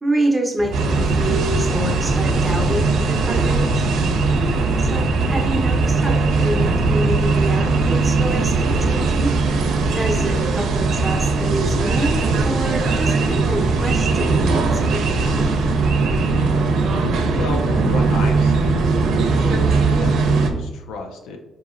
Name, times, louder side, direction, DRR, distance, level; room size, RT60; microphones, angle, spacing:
voice 1, 0.0-3.9 4.8-9.3 9.9-15.6, right 1 dB, 15° right, 1 dB, 0.8 m, -27 dB
sound 1, 0.6-8.7, left 1 dB, 50° right, 0.8 m, -30 dB
sound 2, 0.7-20.5, right 3 dB, 75° right, 0.5 m, -19 dB
voice 2, 17.3-18.9 19.2-21.4, left 3 dB, 90° left, 3 dB, 0.5 m, -31 dB
4.0 x 2.8 x 2.4 m, 1.0 s
cardioid pair, 90°, 0 cm